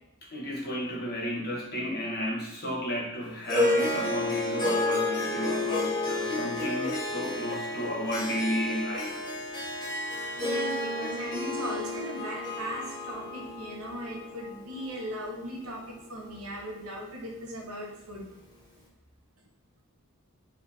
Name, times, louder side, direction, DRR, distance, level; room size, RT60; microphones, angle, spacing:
voice 1, 0.2-9.2, equal, 50° left, -2 dB, 1.2 m, -33 dB
Harp, 3.4-16.0, left 2 dB, 20° left, 1.1 m, -31 dB
voice 2, 10.4-18.3, right 1 dB, 85° right, -1 dB, 1.2 m, -38 dB
4.9 x 3.2 x 3.4 m, 0.88 s
head